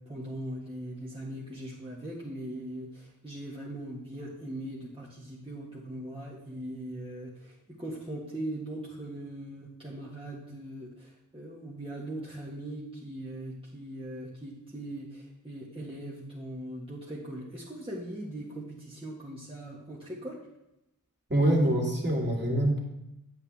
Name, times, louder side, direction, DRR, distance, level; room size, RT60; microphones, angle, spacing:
voice 1, 0.0-20.4, right 1 dB, 15° right, -6 dB, 1.6 m, -40 dB
voice 2, 21.3-22.8, right 1 dB, 30° right, -2 dB, 2.6 m, -25 dB
8.2 x 8.1 x 3.5 m, 0.88 s
wide cardioid pair, 45°, 34 cm